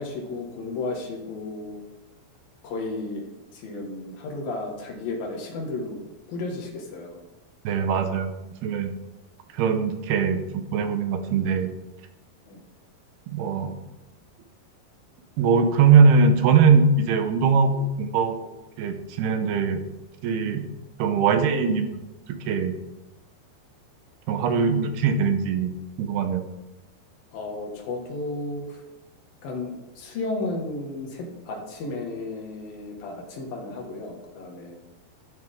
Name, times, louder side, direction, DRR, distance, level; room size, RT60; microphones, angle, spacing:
voice 1, 0.0-1.8 2.6-6.0 6.3-7.2 12.5-12.6 27.3-28.8 29.4-34.8, left 2 dB, 65° left, 0 dB, 3.3 m, -33 dB
voice 2, 7.6-8.9 9.5-11.7 13.3-13.7 15.4-18.5 18.8-19.8 20.2-20.6 21.0-22.0 22.3-22.7 24.3-25.7 26.0-26.4, right 5 dB, 75° right, 7 dB, 2.8 m, -21 dB
12.5 x 11.0 x 3.6 m, 0.99 s
omnidirectional pair, 4.8 m